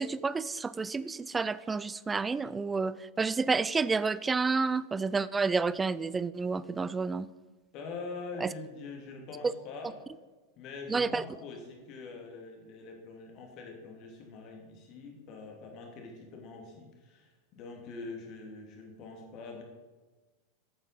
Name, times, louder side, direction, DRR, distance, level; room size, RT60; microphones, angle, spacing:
voice 1, 0.0-7.3 8.4-8.5 10.9-11.2, right 4 dB, 15° right, 17 dB, 0.4 m, -30 dB
voice 2, 7.7-10.0 10.6-19.6, left 3 dB, 40° left, 1 dB, 2.7 m, -44 dB
13.5 x 9.0 x 4.2 m, 1.2 s
figure-of-eight pair, 90°, 0 cm